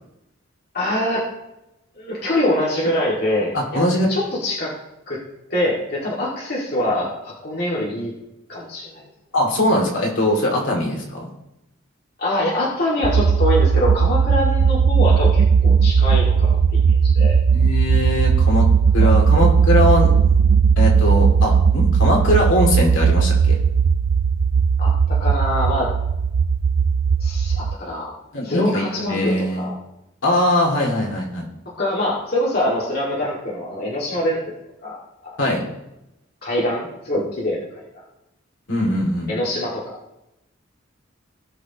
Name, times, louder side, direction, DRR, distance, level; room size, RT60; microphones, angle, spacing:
voice 1, 0.7-1.3 2.0-3.8 4.1-4.7 5.1-5.2 5.5-8.1 8.5-9.0 12.2-17.4 24.8-25.9 27.2-28.1 28.4-29.8 31.8-34.4 34.8-35.0 35.3-35.4 36.4-38.0 39.3-40.0, left 1 dB, 50° left, -5 dB, 2.0 m, -24 dB
voice 2, 3.5-4.1 9.3-11.3 17.5-18.7 18.9-20.3 20.8-23.5 28.3-29.7 30.2-31.5 35.4-35.6 38.7-39.3, left 1 dB, 70° left, -1 dB, 2.4 m, -21 dB
sound 1, 13.0-27.7, right 6 dB, 75° right, 0.4 m, -17 dB
18.0 x 6.2 x 2.9 m, 0.90 s
head